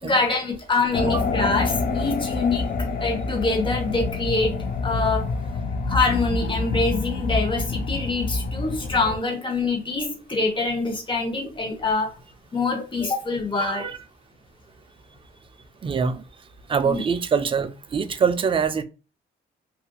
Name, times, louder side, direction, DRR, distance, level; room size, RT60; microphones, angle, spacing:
voice 1, 0.0-2.6 3.0-4.6 4.8-5.3 5.9-12.2 12.5-13.8 16.8-17.0, left 3 dB, 25° left, 0.9 m, -25 dB
sound 1, 0.9-9.2, left 3 dB, 45° left, 0.4 m, -27 dB
voice 2, 13.6-14.0 15.8-16.2 16.7-18.8, right 6 dB, 25° right, 0.4 m, -24 dB
2.7 x 2.5 x 2.2 m
cardioid pair, 90°, 20 cm